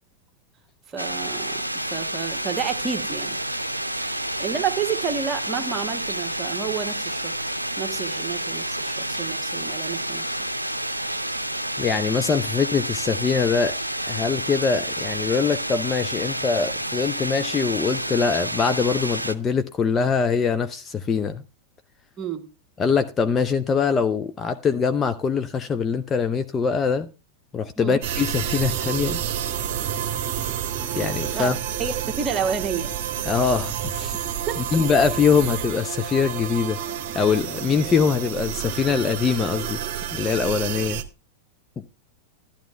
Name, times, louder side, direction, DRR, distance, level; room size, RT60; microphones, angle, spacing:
voice 1, 0.9-3.4 4.4-7.3 7.8-10.2 22.2-22.4 27.8-27.9 31.3-31.5 31.8-32.9 34.5-34.6, right 7 dB, 25° right, 1.7 m, -30 dB
sound 1, 1.0-19.3, right 1 dB, 85° right, 0.6 m, -29 dB
voice 2, 11.8-13.8 14.1-21.4 22.8-27.1 27.5-29.2 30.9-31.6 33.2-34.1 34.6-36.8 37.1-39.8 40.1-41.0, left 6 dB, 20° left, 0.7 m, -23 dB
sound 2, 28.0-41.0, right 9 dB, 45° right, 1.2 m, -29 dB
12.5 x 11.5 x 3.4 m
figure-of-eight pair, 90°, 0 cm